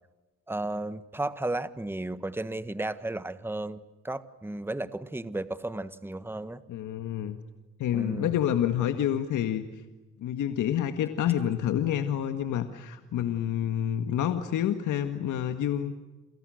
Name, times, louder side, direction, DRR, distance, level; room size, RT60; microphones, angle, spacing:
voice 1, 0.5-6.6 7.9-8.4, right 2 dB, 5° right, 13 dB, 1.4 m, -34 dB
voice 2, 6.7-7.4 7.8-9.7 10.2-15.9, left 10 dB, 80° left, 8 dB, 1.9 m, -28 dB
29.5 x 28.0 x 6.5 m, 1.1 s
cardioid pair, 90°, 30 cm